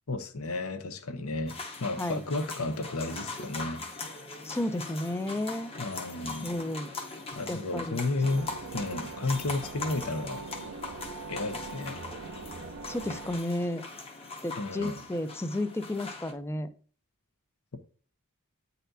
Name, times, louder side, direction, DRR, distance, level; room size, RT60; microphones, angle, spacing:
voice 1, 0.1-3.8 5.8-6.6 7.3-10.5 11.3-12.0 14.5-15.0, left 2 dB, 75° left, 0.8 m, -33 dB
sound 1, 1.5-16.3, left 3 dB, 25° left, 0.9 m, -41 dB
voice 2, 4.4-5.7 6.4-6.9 7.5-8.0 12.9-13.8 14.4-16.7, left 1 dB, 10° left, 0.4 m, -32 dB
sound 2, 8.2-13.4, right 4 dB, 60° right, 0.5 m, -42 dB
8.9 x 4.2 x 2.7 m
head